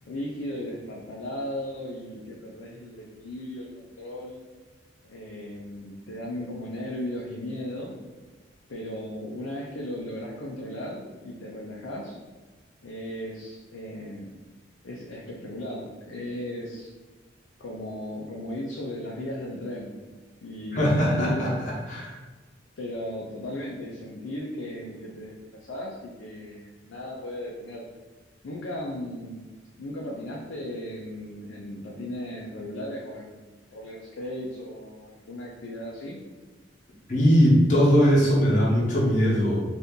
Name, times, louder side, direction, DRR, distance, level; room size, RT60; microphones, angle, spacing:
voice 1, 0.0-4.4 5.1-7.9 8.7-12.2 12.8-14.3 14.8-16.9 17.6-20.0 20.4-21.5 22.8-27.9 28.4-29.4 29.8-36.2, left 1 dB, 80° left, -3 dB, 0.5 m, -36 dB
voice 2, 20.7-22.2 37.1-39.6, equal, 40° left, -5 dB, 0.8 m, -20 dB
2.7 x 2.5 x 3.6 m, 1.3 s
head